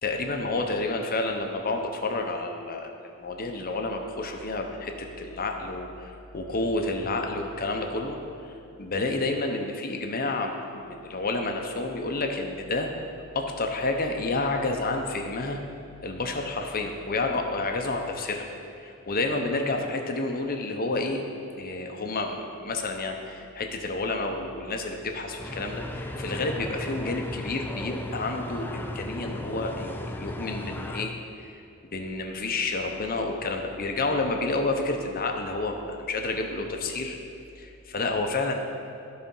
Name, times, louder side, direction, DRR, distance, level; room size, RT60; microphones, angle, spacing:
voice 1, 0.0-8.2 8.4-12.9 13.3-15.6 16.0-18.5 18.8-21.3 21.5-31.6 31.8-37.2 37.6-38.5, left 2 dB, 45° left, 3 dB, 0.8 m, -30 dB
sound 1, 25.4-31.1, left 1 dB, 10° left, 0.4 m, -36 dB
12.5 x 4.3 x 5.5 m, 2.7 s
head